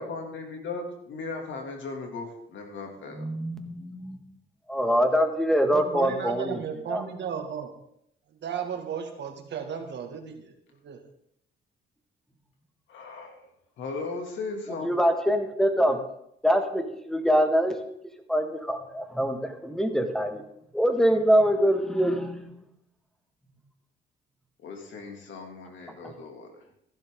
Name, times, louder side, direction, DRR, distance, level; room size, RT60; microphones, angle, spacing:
voice 1, 0.0-3.3 12.9-13.5 13.8-14.9 24.6-26.5, left 3 dB, 70° left, 3 dB, 2.7 m, -37 dB
voice 2, 3.1-4.2 4.7-6.6 6.9-7.0 14.7-16.1 16.4-17.7 18.3-20.4 20.7-22.6 26.0-26.1, equal, ahead, 6 dB, 1.9 m, -24 dB
voice 3, 5.7-7.7 8.4-10.5 10.8-11.0, right 7 dB, 65° right, 4 dB, 2.1 m, -34 dB
14.5 x 11.5 x 3.8 m, 0.73 s
cardioid pair, 90°, 20 cm